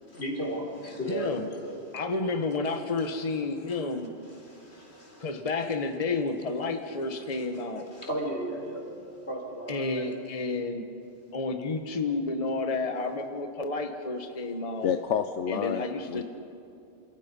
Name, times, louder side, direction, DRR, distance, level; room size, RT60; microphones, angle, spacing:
voice 1, 0.1-2.0 2.7-3.1 3.7-5.3 5.6-5.7 7.2-7.5 7.9-9.0 9.3-10.1, equal, 65° left, 1 dB, 4.4 m, -36 dB
voice 2, 1.1-1.5 1.9-4.1 5.2-7.9 9.7-10.8 11.3-14.9 15.5-16.2, left 3 dB, 30° left, 5 dB, 1.2 m, -31 dB
voice 3, 14.8-16.2, left 8 dB, 85° left, 8 dB, 1.1 m, -29 dB
29.0 x 28.0 x 5.4 m, 2.7 s
omnidirectional pair, 1.2 m